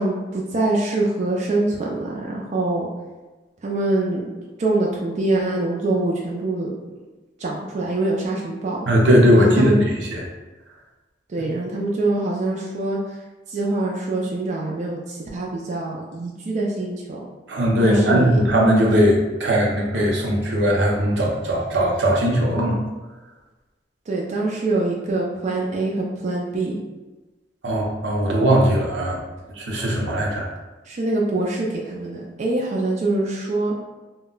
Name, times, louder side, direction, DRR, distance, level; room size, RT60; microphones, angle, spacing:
voice 1, 0.0-2.9 3.6-4.3 4.6-6.7 7.4-8.9 9.3-9.8 11.3-13.0 13.5-17.3 17.8-18.4 24.1-26.8 30.9-33.7, right 2 dB, 40° right, -3 dB, 0.3 m, -24 dB
voice 2, 8.9-10.2 17.5-22.8 27.6-29.2 29.6-30.5, equal, 80° right, -1 dB, 0.6 m, -19 dB
2.2 x 2.1 x 3.7 m, 1.2 s
head